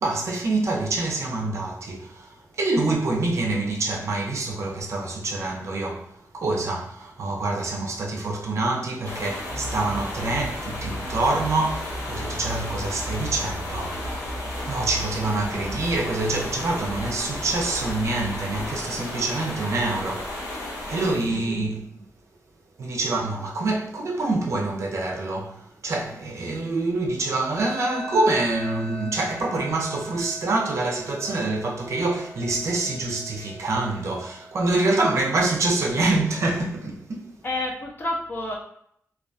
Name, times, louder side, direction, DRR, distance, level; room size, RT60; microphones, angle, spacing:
voice 1, 0.0-22.0 22.8-37.3, right 2 dB, 65° right, 0.4 m, -26 dB
sound 1, 9.0-21.1, left 1 dB, 80° left, 0.7 m, -34 dB
sound 2, 9.5-18.8, right 1 dB, 60° left, 1.0 m, -37 dB
sound 3, 27.6-36.6, right 1 dB, 10° right, 0.5 m, -42 dB
voice 2, 37.4-38.6, left 2 dB, 40° left, 0.5 m, -31 dB
2.3 x 2.2 x 2.5 m
wide cardioid pair, 165°, 5 cm